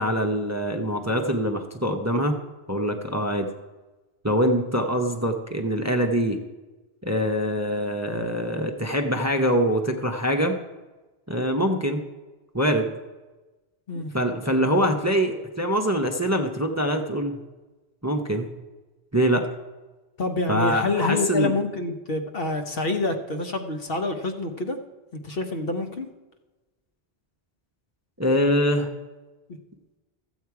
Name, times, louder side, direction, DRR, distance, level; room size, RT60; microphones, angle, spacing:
voice 1, 0.0-2.4 2.7-3.5 4.2-6.4 7.0-10.6 11.3-12.0 12.5-12.9 14.1-17.4 18.0-18.5 19.1-19.5 20.5-21.5 28.2-28.9, equal, 15° right, 4 dB, 0.7 m, -24 dB
voice 2, 20.2-24.8 25.1-26.1, left 2 dB, 60° left, 6 dB, 1.1 m, -27 dB
14.0 x 8.1 x 4.7 m, 1.2 s
omnidirectional pair, 1.1 m